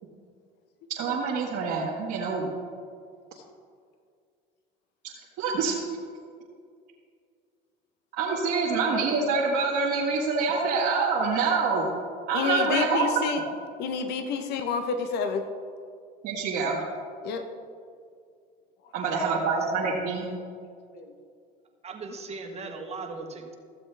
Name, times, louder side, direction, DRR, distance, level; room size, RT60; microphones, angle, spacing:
voice 1, 1.0-2.5 5.4-5.8 8.2-11.9 12.3-13.1 16.2-16.8 18.9-20.3, right 4 dB, 65° right, -6 dB, 1.7 m, -26 dB
voice 2, 12.3-13.4 13.8-15.4 17.2-17.4 20.9-21.1, left 5 dB, 65° left, 7 dB, 1.0 m, -28 dB
voice 3, 21.8-23.5, right 3 dB, 35° right, 2 dB, 1.4 m, -38 dB
14.5 x 7.5 x 3.4 m, 2.2 s
supercardioid pair, 90°, 19 cm